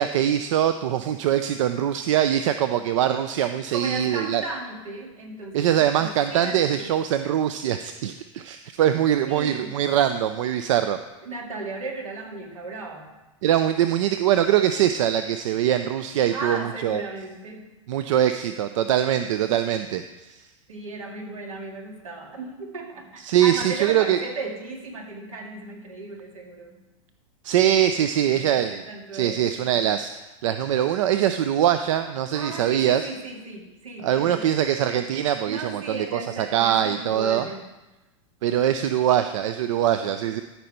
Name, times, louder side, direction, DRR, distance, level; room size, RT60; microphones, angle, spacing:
voice 1, 0.0-4.4 5.5-11.0 13.4-17.0 17.9-20.4 23.2-24.2 27.4-28.8 29.1-33.1 34.0-37.5 38.4-40.4, right 10 dB, 70° right, 9 dB, 0.5 m, -23 dB
voice 2, 3.7-6.9 9.2-9.7 11.2-13.1 16.3-17.7 20.7-26.8 28.2-29.4 32.3-34.5 35.5-37.7, right 3 dB, 90° right, 1 dB, 2.2 m, -35 dB
13.5 x 5.5 x 4.4 m, 1.1 s
hypercardioid pair, 110°, 17 cm